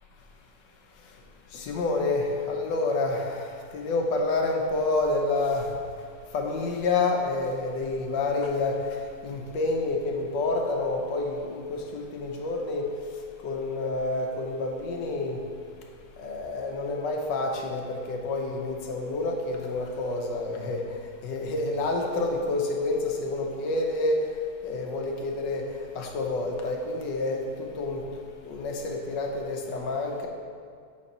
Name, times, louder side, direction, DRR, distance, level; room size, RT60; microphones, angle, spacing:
voice 1, 1.5-5.7 6.3-12.9 13.4-15.4 16.2-20.8 21.2-24.3 24.6-25.7 25.9-28.1 28.4-30.3, left 2 dB, 85° left, 1 dB, 1.5 m, -28 dB
7.5 x 4.3 x 5.3 m, 2.3 s
omnidirectional pair, 1.9 m